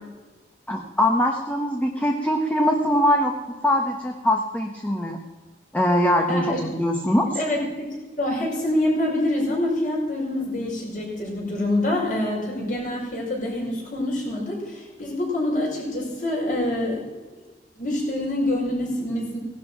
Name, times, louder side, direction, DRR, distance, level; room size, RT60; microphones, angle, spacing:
voice 1, 0.7-3.4 3.6-5.2 5.7-7.3, left 1 dB, 10° left, 2 dB, 1.1 m, -22 dB
voice 2, 6.3-6.6 7.3-7.9 8.1-17.1 17.8-19.4, left 1 dB, 50° left, -2 dB, 5.5 m, -26 dB
17.5 x 11.5 x 5.8 m, 1.3 s
head